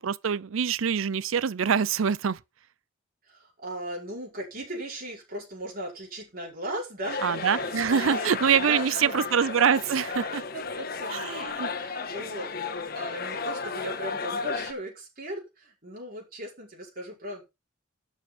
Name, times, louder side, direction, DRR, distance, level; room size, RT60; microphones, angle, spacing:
voice 1, 0.0-2.4 7.2-10.4 11.1-11.7, right 7 dB, 85° right, 0.5 m, -25 dB
voice 2, 3.3-9.2 10.5-17.4, right 1 dB, 45° right, 5.3 m, -38 dB
sound 1, 7.0-14.7, left 4 dB, 50° left, 1.5 m, -33 dB
11.5 x 7.1 x 5.2 m
head